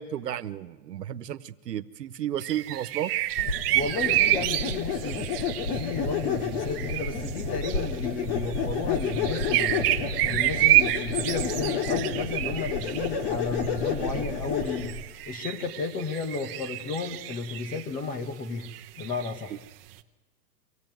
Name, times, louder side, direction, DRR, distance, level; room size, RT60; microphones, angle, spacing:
voice 1, 0.0-3.1, right 11 dB, 90° right, 12 dB, 1.3 m, -33 dB
sound 1, 2.4-18.0 18.3-20.0, right 15 dB, 35° right, 1.2 m, -29 dB
sound 2, 3.4-15.0, left 5 dB, 35° left, 2.6 m, -30 dB
voice 2, 3.7-5.2 5.7-9.9 10.3-18.7 19.0-19.5, left 4 dB, 20° left, 9 dB, 1.5 m, -33 dB
24.5 x 17.5 x 9.3 m, 1.2 s
hypercardioid pair, 160°, 47 cm